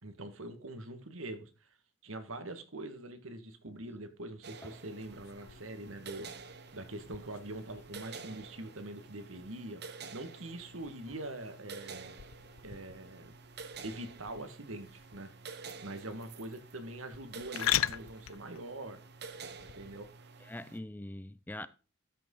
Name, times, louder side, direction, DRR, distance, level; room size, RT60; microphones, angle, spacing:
voice 1, 0.0-1.8 2.0-9.8 10.1-12.1 12.6-13.3 13.8-15.3 15.8-19.0 19.7-20.1, right 1 dB, 85° right, 1.7 m, -44 dB
sound 1, 4.4-20.8, right 4 dB, 55° right, 0.9 m, -49 dB
sound 2, 5.0-20.1, left 12 dB, 85° left, 0.4 m, -42 dB
voice 2, 20.4-21.7, left 1 dB, 10° left, 0.4 m, -43 dB
13.0 x 6.3 x 3.8 m
head